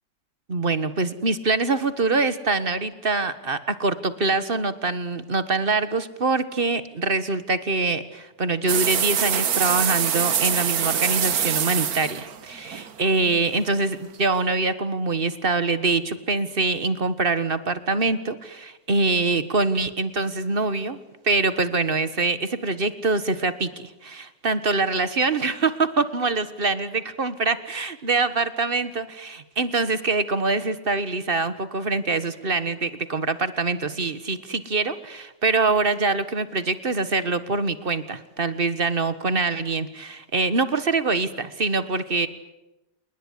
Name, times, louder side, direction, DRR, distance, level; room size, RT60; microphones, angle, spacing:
voice 1, 0.5-21.0 21.2-42.3, right 3 dB, 35° right, 13 dB, 1.5 m, -24 dB
sound 1, 8.7-13.6, right 8 dB, 60° right, 1.6 m, -24 dB
29.0 x 20.0 x 9.8 m, 0.97 s
omnidirectional pair, 1.9 m